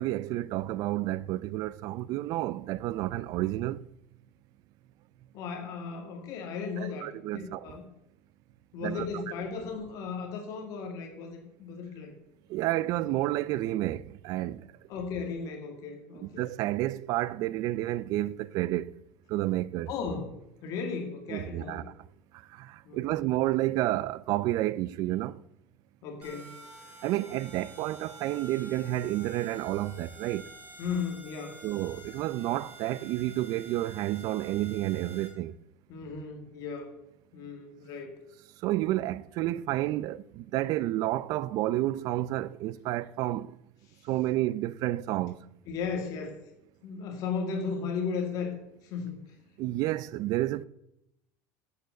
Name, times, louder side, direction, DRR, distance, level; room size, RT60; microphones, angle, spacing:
voice 1, 0.0-3.9 6.8-7.8 8.8-9.1 12.5-14.7 16.2-19.0 19.3-19.9 21.3-21.8 22.3-25.4 27.0-30.5 31.6-35.6 38.6-43.6 44.0-45.5 49.6-50.7, right 15 dB, 50° right, 0.5 m, -30 dB
voice 2, 5.3-7.9 8.7-12.2 14.9-16.4 19.9-21.9 22.8-23.2 26.0-26.6 30.8-31.6 35.9-36.9 37.3-38.2 43.9-44.1 45.7-46.4 46.8-48.5 48.8-49.2, left 5 dB, 45° left, 2.3 m, -36 dB
sound 1, 26.2-35.3, right 3 dB, 20° right, 4.4 m, -49 dB
11.0 x 8.0 x 8.1 m
supercardioid pair, 150°, 8 cm